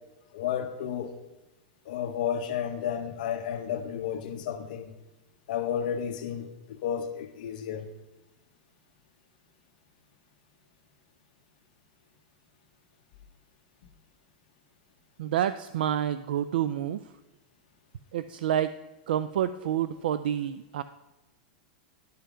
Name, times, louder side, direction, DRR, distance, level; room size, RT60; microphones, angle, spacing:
voice 1, 0.3-1.2 1.9-4.9 5.5-7.8, left 9 dB, 60° left, 1.0 m, -32 dB
voice 2, 15.2-17.0 18.1-18.7 19.1-20.8, right 10 dB, 80° right, 0.4 m, -28 dB
11.5 x 5.7 x 4.9 m
supercardioid pair, 165°, 5 cm